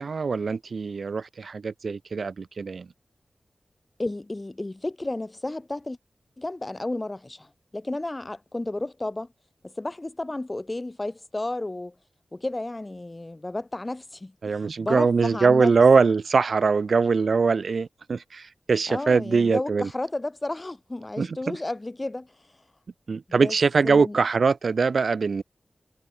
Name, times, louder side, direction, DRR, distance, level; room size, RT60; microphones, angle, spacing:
voice 1, 0.0-2.9 14.4-19.9 21.2-21.6 23.1-25.4, right 5 dB, 80° right, 0.5 m, -22 dB
voice 2, 4.0-6.0 6.4-9.3 9.6-12.0 12.3-15.7 18.9-22.3 23.4-23.6 23.8-24.2, left 2 dB, 30° left, 3.7 m, -32 dB
wide cardioid pair, 75°, 0 cm